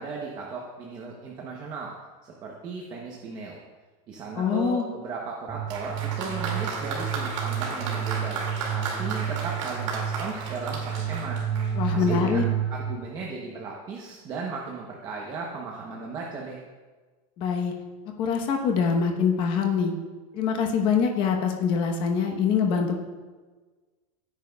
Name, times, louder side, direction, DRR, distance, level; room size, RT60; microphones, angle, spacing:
voice 1, 0.0-1.9 2.2-3.6 4.1-8.4 8.7-11.4 11.9-12.4 12.7-16.6, right 4 dB, 20° right, -1 dB, 0.8 m, -36 dB
voice 2, 4.4-4.8 11.7-12.4 17.4-17.7 18.2-19.9 20.3-22.9, left 6 dB, 25° left, 3 dB, 1.0 m, -24 dB
sound 1, 5.5-12.9, right 9 dB, ahead, 2.1 m, -30 dB
Applause, 5.7-12.1, right 4 dB, 55° right, 2.3 m, -34 dB
16.5 x 9.3 x 2.3 m, 1.3 s
supercardioid pair, 180°, 19 cm